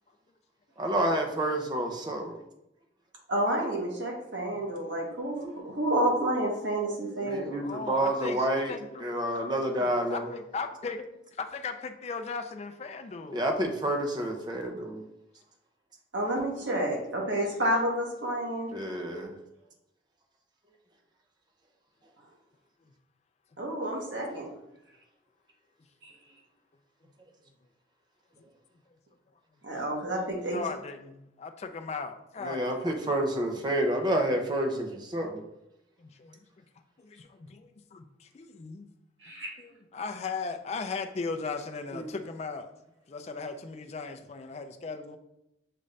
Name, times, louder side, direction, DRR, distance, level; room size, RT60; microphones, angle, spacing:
voice 1, 0.8-2.4 7.2-8.7 9.0-10.3 13.3-15.0 18.7-19.3 32.4-35.4 41.9-42.1, right 1 dB, 25° right, 0.6 m, -29 dB
voice 2, 3.3-7.6 16.1-18.7 23.6-24.5 26.0-26.1 29.6-30.6 39.2-39.5, right 1 dB, 80° right, 1.2 m, -29 dB
voice 3, 7.6-9.0 9.5-11.1 11.4-13.4 30.5-32.9 36.0-36.6 37.0-38.9 39.6-42.7 43.1-45.2, left 4 dB, 35° left, 0.4 m, -38 dB
6.6 x 2.5 x 3.2 m
head